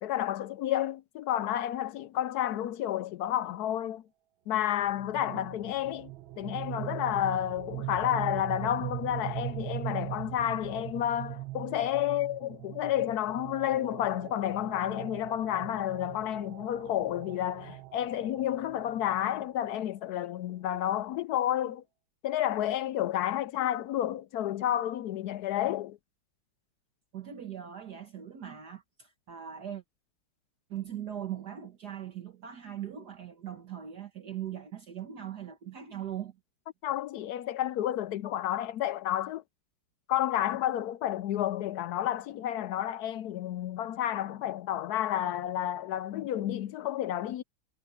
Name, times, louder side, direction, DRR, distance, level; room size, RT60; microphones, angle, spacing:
voice 1, 0.0-4.0 4.5-6.1 6.4-21.8 22.2-26.0 36.8-39.4 40.1-47.4, left 12 dB, 75° left, 0.9 m, -30 dB
sound 1, 4.8-19.7, right 18 dB, 90° right, 1.6 m, -41 dB
voice 2, 27.1-29.8 30.7-36.4, right 10 dB, 55° right, 2.0 m, -40 dB
omnidirectional pair, 2.1 m